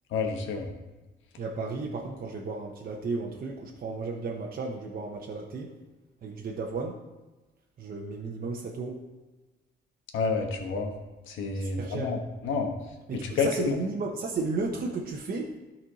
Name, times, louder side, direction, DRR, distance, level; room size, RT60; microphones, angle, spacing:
voice 1, 0.1-0.7 10.1-10.9 11.3-12.2 12.4-12.7 13.2-13.8, left 5 dB, 80° left, 4 dB, 1.2 m, -29 dB
voice 2, 1.4-5.7 6.2-7.0 7.8-9.0 11.5-12.1 13.1-15.6, right 3 dB, 50° right, -1 dB, 0.9 m, -34 dB
12.5 x 4.3 x 4.1 m, 1.2 s
cardioid pair, 90°, 20 cm